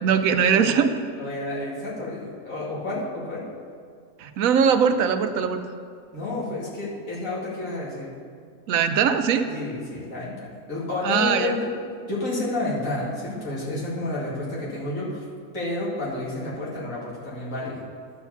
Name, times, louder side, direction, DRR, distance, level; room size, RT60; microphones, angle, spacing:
voice 1, 0.0-0.9 4.2-5.6 8.7-9.5 11.0-11.5, right 7 dB, 80° right, 9 dB, 1.0 m, -21 dB
voice 2, 1.2-3.5 6.1-8.1 9.5-11.7 12.1-15.2 15.5-17.8, left 2 dB, 70° left, -7 dB, 2.7 m, -30 dB
12.0 x 4.8 x 6.9 m, 2.1 s
omnidirectional pair, 1.5 m